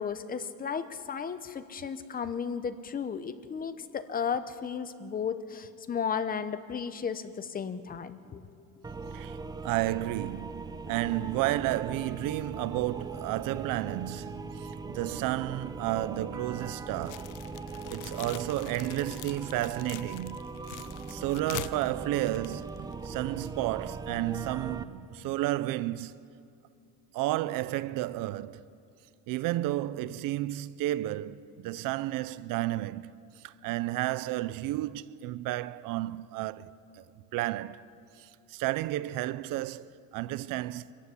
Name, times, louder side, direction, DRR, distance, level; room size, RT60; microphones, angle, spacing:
voice 1, 0.0-8.4, left 7 dB, 25° left, 0.8 m, -34 dB
sound 1, 8.8-24.8, right 4 dB, 10° right, 0.6 m, -40 dB
voice 2, 9.6-17.3 17.9-20.4 21.1-26.2 27.1-28.6 29.3-37.0 37.3-37.8 38.2-40.9, right 16 dB, 70° right, 0.6 m, -32 dB
sound 2, 17.0-23.1, left 16 dB, 60° left, 0.6 m, -44 dB
24.0 x 15.0 x 9.7 m
cardioid pair, 160°, 35 cm